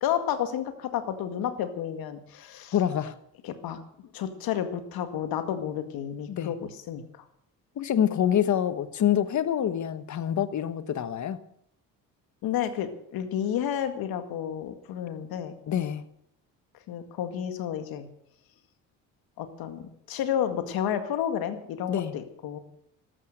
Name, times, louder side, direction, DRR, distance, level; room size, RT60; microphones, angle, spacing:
voice 1, 0.0-2.7 3.4-3.8 4.1-7.0 12.4-15.5 16.9-18.1 19.4-22.6, left 9 dB, 80° left, 8 dB, 2.0 m, -31 dB
voice 2, 2.7-3.2 6.3-6.5 7.8-11.4 15.7-16.0 21.9-22.1, left 10 dB, 50° left, 13 dB, 1.3 m, -26 dB
13.5 x 12.5 x 6.7 m, 0.69 s
cardioid pair, 100°, 36 cm